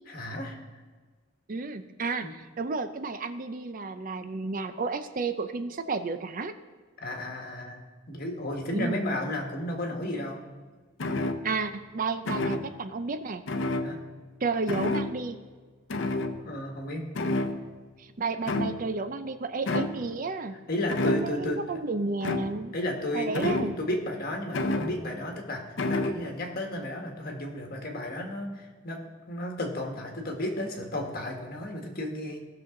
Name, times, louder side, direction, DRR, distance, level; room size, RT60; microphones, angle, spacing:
voice 1, 0.1-0.6 2.2-2.3 7.0-7.8 8.1-10.5 13.8-14.0 16.4-17.1 20.7-21.8 22.7-32.4, left 1 dB, 50° left, 1 dB, 1.6 m, -33 dB
voice 2, 1.5-6.5 8.7-9.0 11.4-13.4 14.4-15.4 18.0-20.6 21.0-22.8 23.1-23.7, right 3 dB, 45° right, 10 dB, 0.5 m, -32 dB
sound 1, 11.0-11.7 12.3-12.9 13.5-14.4 14.7-15.3 15.9-16.8 17.2-17.9 18.5-19.1 19.7-20.1 20.9-21.6 22.2-22.8 23.3-24.0 24.5-25.3 25.8-26.3, left 2 dB, 70° left, 0.7 m, -30 dB
17.5 x 6.3 x 3.8 m, 1.5 s
head